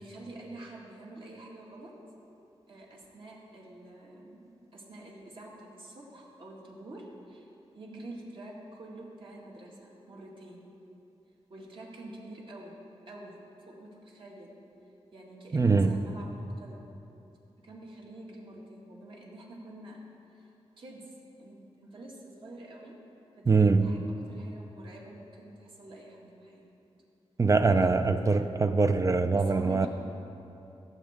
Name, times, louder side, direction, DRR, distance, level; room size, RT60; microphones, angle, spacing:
voice 1, 0.0-2.0 2.7-7.5 7.7-10.7 11.5-12.8 13.1-14.6 15.1-16.9 17.6-20.0 20.3-20.5 20.8-21.1 21.4-23.0 23.4-24.0 24.3-26.7 27.9-28.7 29.3-29.9, right 1 dB, 55° right, -3 dB, 2.0 m, -47 dB
voice 2, 15.5-16.0 23.5-23.9 27.4-29.9, right 4 dB, 30° right, 9 dB, 0.4 m, -23 dB
17.5 x 7.9 x 3.7 m, 2.8 s
wide cardioid pair, 120°, 11 cm